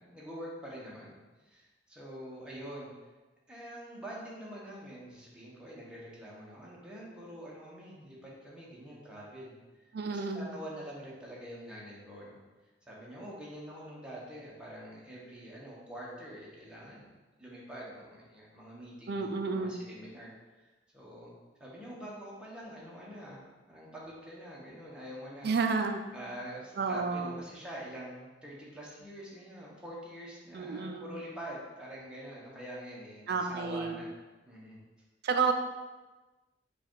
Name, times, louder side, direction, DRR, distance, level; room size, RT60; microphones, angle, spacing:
voice 1, 0.0-2.9 3.5-9.5 9.8-12.4 12.9-17.1 17.4-20.3 20.6-21.3 21.6-25.5 26.1-34.1 34.4-34.8, equal, 5° right, -5 dB, 0.9 m, -45 dB
voice 2, 9.9-10.5 19.1-19.8 25.4-26.0 26.8-27.4 30.5-31.1 33.3-34.0 35.2-35.5, right 4 dB, 60° right, 6 dB, 0.4 m, -31 dB
4.8 x 2.4 x 4.5 m, 1.2 s
head